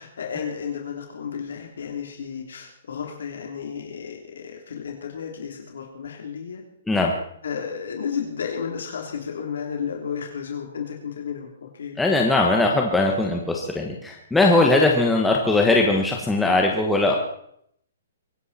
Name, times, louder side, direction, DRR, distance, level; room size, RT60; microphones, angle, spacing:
voice 1, 0.0-6.6 7.4-12.0, left 7 dB, 80° left, 2 dB, 3.3 m, -32 dB
voice 2, 12.0-17.1, left 2 dB, 5° left, 0 dB, 1.3 m, -20 dB
23.5 x 11.5 x 4.3 m, 0.69 s
hypercardioid pair, 170°, 0 cm